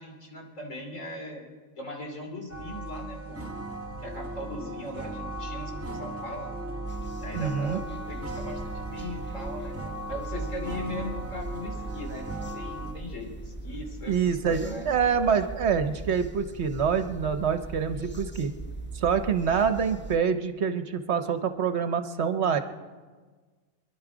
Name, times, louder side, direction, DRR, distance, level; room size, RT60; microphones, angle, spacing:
voice 1, 0.0-1.4 1.8-3.4 4.0-6.5 7.2-9.8 10.1-14.9, left 1 dB, 70° left, 1 dB, 3.2 m, -39 dB
sound 1, 2.5-12.9, right 1 dB, 10° right, 1.9 m, -37 dB
sound 2, 6.9-20.2, right 3 dB, 10° left, 0.5 m, -40 dB
voice 2, 7.3-7.8 14.1-18.5 18.9-22.6, right 6 dB, 60° right, 9 dB, 1.1 m, -26 dB
26.5 x 11.0 x 5.0 m, 1.4 s
omnidirectional pair, 1.4 m